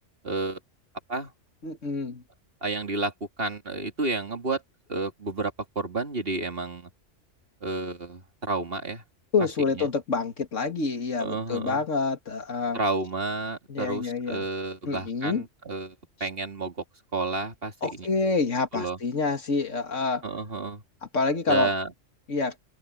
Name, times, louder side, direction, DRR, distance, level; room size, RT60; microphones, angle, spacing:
voice 1, 0.2-0.6 1.1-1.3 2.6-3.1 3.4-4.6 4.9-6.9 7.6-9.0 9.7-9.9 11.2-11.8 12.7-16.8 17.1-18.1 18.7-19.0 20.2-20.8 21.5-21.9, right 3 dB, 50° right, 2.8 m, -31 dB
voice 2, 1.6-2.2 9.3-12.8 13.7-14.5 14.9-15.4 17.8-20.2 21.1-21.7 22.3-22.5, left 4 dB, 85° left, 2.4 m, -27 dB
open air
omnidirectional pair, 1.3 m